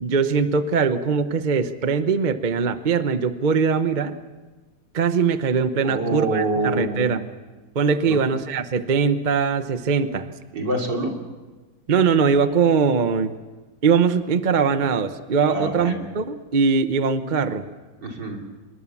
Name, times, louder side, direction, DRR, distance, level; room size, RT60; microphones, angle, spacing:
voice 1, 0.0-4.1 4.9-7.2 7.7-10.3 11.9-13.4 13.8-17.6, right 5 dB, 40° right, 10 dB, 0.7 m, -21 dB
voice 2, 5.8-7.1 8.0-8.2 10.5-11.1 15.5-16.0 18.0-18.4, right 2 dB, 65° right, 1 dB, 3.7 m, -26 dB
25.5 x 21.0 x 7.2 m, 1.3 s
omnidirectional pair, 2.1 m